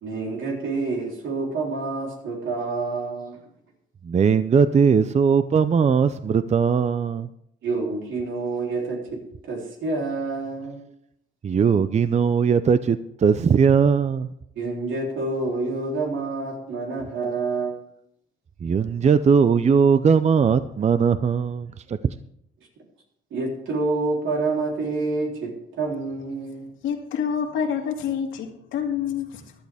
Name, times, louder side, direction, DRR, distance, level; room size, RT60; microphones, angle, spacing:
voice 1, 0.0-3.4 7.6-10.8 14.6-17.8 23.3-26.7, right 3 dB, 75° right, 0 dB, 3.6 m, -28 dB
voice 2, 4.0-7.3 11.4-14.3 18.6-22.1, right 6 dB, 35° right, 13 dB, 0.5 m, -19 dB
voice 3, 26.8-29.5, left 7 dB, 90° left, 2 dB, 2.2 m, -27 dB
14.5 x 12.0 x 3.5 m, 0.74 s
cardioid pair, 90°, 20 cm